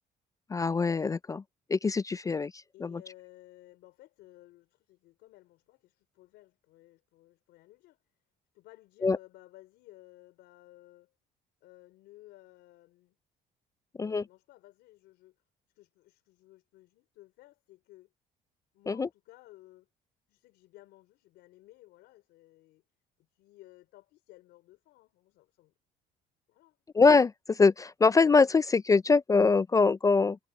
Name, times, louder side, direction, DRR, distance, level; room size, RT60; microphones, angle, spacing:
voice 1, 0.5-1.4 1.7-2.5 2.8-3.0 9.0-9.2 14.0-14.2 18.9-19.1 26.9-30.4, left 4 dB, 20° left, 0.4 m, -23 dB
voice 2, 2.7-8.0 8.5-11.1 11.6-13.2 14.0-15.4 15.7-18.1 18.7-19.9 20.3-22.8 23.3-25.7 26.5-26.8, left 17 dB, 85° left, 4.1 m, -56 dB
cardioid pair, 110°, 17 cm